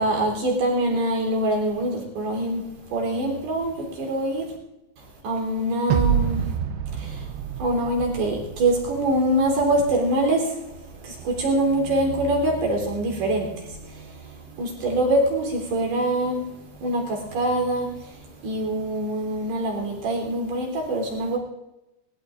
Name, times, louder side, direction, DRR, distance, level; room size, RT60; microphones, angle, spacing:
voice 1, 0.0-4.5 5.0-6.6 6.9-21.4, right 1 dB, 55° right, 1 dB, 5.4 m, -25 dB
sound 1, 5.9-9.2, right 9 dB, 85° right, 2.4 m, -27 dB
22.5 x 21.0 x 2.6 m, 0.92 s
omnidirectional pair, 5.8 m